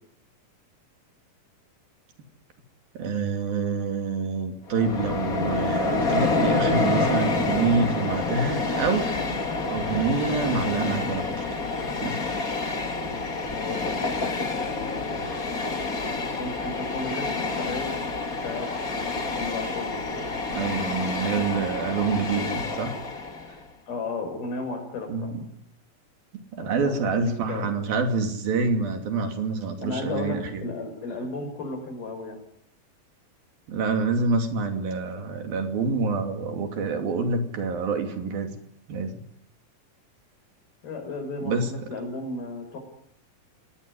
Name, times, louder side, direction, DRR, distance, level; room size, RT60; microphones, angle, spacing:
voice 1, 2.9-11.4 12.0-12.2 20.5-23.0 25.1-25.5 26.5-30.7 33.7-38.6 38.9-39.2 41.4-41.7, right 4 dB, 75° right, 6 dB, 4.6 m, -27 dB
Train, 4.7-23.6, left 3 dB, 30° left, 2.1 m, -28 dB
voice 2, 13.5-14.2 14.5-15.3 16.4-18.0 18.4-20.5 23.9-25.3 26.6-27.7 29.8-32.4 40.8-42.8, left 3 dB, 85° left, 5 dB, 7.9 m, -34 dB
26.0 x 19.0 x 10.0 m, 0.73 s
omnidirectional pair, 4.2 m